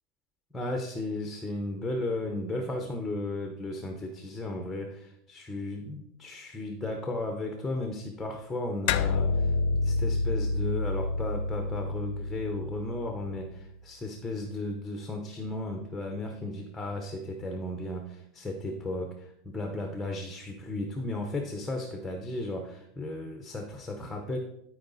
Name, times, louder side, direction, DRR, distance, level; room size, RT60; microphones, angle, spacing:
voice 1, 0.5-9.5 9.8-24.4, left 2 dB, 5° left, 4 dB, 0.8 m, -35 dB
sound 1, 8.9-13.6, left 3 dB, 55° left, 0.6 m, -29 dB
12.5 x 4.8 x 4.0 m, 0.78 s
supercardioid pair, 165°, 0 cm